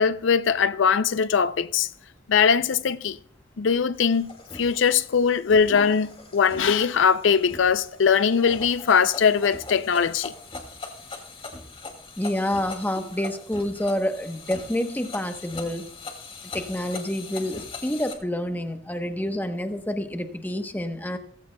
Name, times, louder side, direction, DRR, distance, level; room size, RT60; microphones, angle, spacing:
voice 1, 0.0-1.9 2.3-3.2 3.6-4.3 4.5-10.3, left 6 dB, 75° left, 0.5 m, -21 dB
sound 1, 3.9-18.1, left 3 dB, 30° left, 2.4 m, -41 dB
voice 2, 12.2-15.8 16.5-21.2, left 1 dB, 10° left, 1.0 m, -28 dB
17.5 x 15.0 x 2.2 m
head